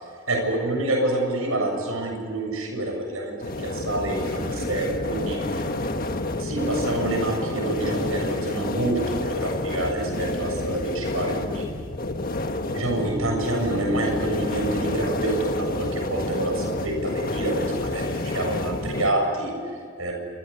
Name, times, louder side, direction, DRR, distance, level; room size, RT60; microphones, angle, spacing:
voice 1, 0.3-5.4 6.4-11.7 12.7-20.1, right 1 dB, 75° right, 2 dB, 7.3 m, -27 dB
sound 1, 3.4-19.1, left 2 dB, 40° left, 1.5 m, -29 dB
28.5 x 26.5 x 7.0 m, 2.1 s
head